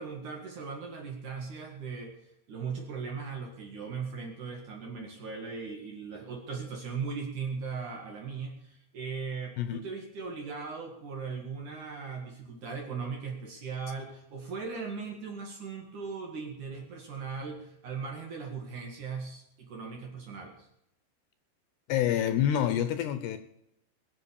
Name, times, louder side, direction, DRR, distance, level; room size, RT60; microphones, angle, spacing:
voice 1, 0.0-2.2 2.5-20.7, right 5 dB, 55° right, 2.6 m, -38 dB
voice 2, 21.9-23.4, left 10 dB, 75° left, 2.7 m, -27 dB
21.0 x 8.0 x 7.0 m
omnidirectional pair, 5.3 m